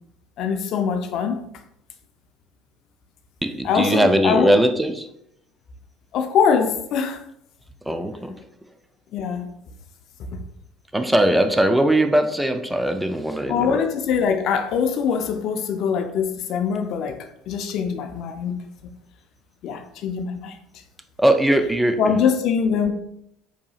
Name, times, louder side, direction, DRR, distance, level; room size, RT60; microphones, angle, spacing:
voice 1, 0.4-1.4 3.6-4.6 6.1-7.2 7.9-8.0 9.1-9.4 10.3-10.4 13.5-17.2 17.5-18.6 19.6-20.6 22.0-22.9, left 6 dB, 60° left, 6 dB, 0.5 m, -23 dB
voice 2, 3.4-5.1 7.9-8.3 10.9-13.8 21.2-22.0, right 1 dB, 10° right, 7 dB, 0.4 m, -20 dB
4.6 x 2.8 x 2.4 m, 0.74 s
hypercardioid pair, 70°, 0 cm